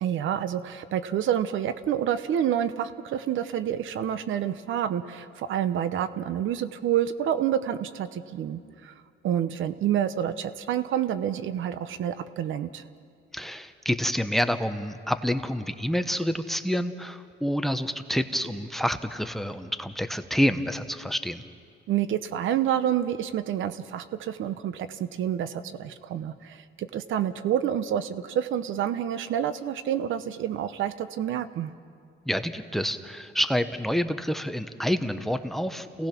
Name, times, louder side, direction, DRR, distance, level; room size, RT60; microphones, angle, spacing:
voice 1, 0.0-8.9 9.2-12.8 21.9-31.7, right 10 dB, 80° right, 12 dB, 0.9 m, -28 dB
voice 2, 13.3-21.4 32.3-36.1, equal, ahead, 10 dB, 1.0 m, -28 dB
28.5 x 17.5 x 6.0 m, 2.2 s
cardioid pair, 90°, 20 cm